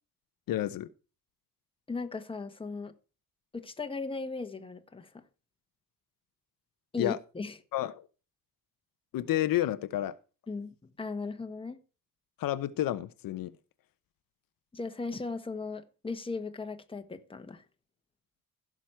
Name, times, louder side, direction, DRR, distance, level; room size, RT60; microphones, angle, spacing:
voice 1, 0.5-0.9 7.0-7.2 7.7-8.1 9.1-10.2 12.4-13.5, left 13 dB, 70° left, 0.9 m, -30 dB
voice 2, 1.9-2.9 3.5-5.2 6.9-7.5 10.5-11.8 14.7-17.6, left 4 dB, 15° left, 1.3 m, -37 dB
16.0 x 6.2 x 4.4 m
cardioid pair, 115°, 35 cm